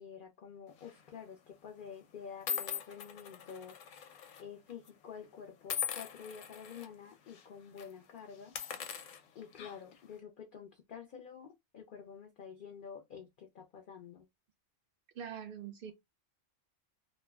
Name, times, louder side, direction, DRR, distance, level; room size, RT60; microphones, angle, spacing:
voice 1, 0.0-4.0 4.4-8.5 9.3-14.3, left 7 dB, 55° left, 0.6 m, -49 dB
sound 1, 0.8-1.1 1.8-1.9 2.5-4.4 4.7-4.9 5.7-6.9 7.3-7.4 7.7-7.9 8.4-10.0, left 7 dB, 90° left, 1.0 m, -40 dB
voice 2, 15.1-15.9, right 8 dB, 60° right, 0.6 m, -43 dB
2.6 x 2.1 x 3.3 m
omnidirectional pair, 1.3 m